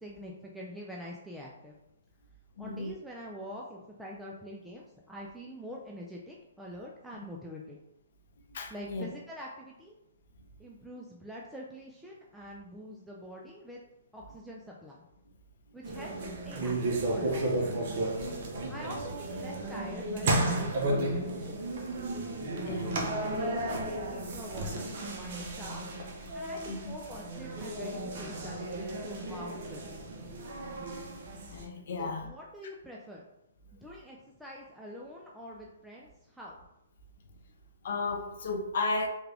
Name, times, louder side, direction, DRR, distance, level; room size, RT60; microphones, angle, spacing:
voice 1, 0.0-1.8 2.6-7.8 8.7-10.0 10.6-13.8 14.1-15.0 15.7-17.8 18.7-21.8 22.8-23.1 23.4-25.8 26.3-30.0 32.0-33.2 33.7-36.6, equal, ahead, 0.3 m, -45 dB
voice 2, 2.6-2.9 8.5-9.1 16.2-16.3 22.7-23.0 26.7-26.9 31.5-32.3 37.8-39.1, left 3 dB, 60° left, 0.6 m, -34 dB
sound 1, 15.8-31.6, right 1 dB, 50° right, 0.8 m, -33 dB
3.5 x 2.3 x 3.4 m
hypercardioid pair, 150°, 0 cm